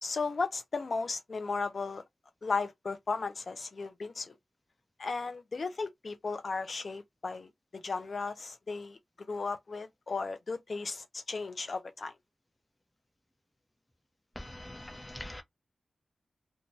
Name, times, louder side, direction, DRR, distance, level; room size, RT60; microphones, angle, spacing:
voice 1, 0.0-2.0 2.4-4.4 5.0-7.5 7.8-9.0 9.3-12.1, left 4 dB, 55° left, 0.3 m, -35 dB
voice 2, 14.4-15.4, left 1 dB, 15° left, 0.7 m, -43 dB
2.6 x 2.2 x 2.9 m
wide cardioid pair, 95°, 0 cm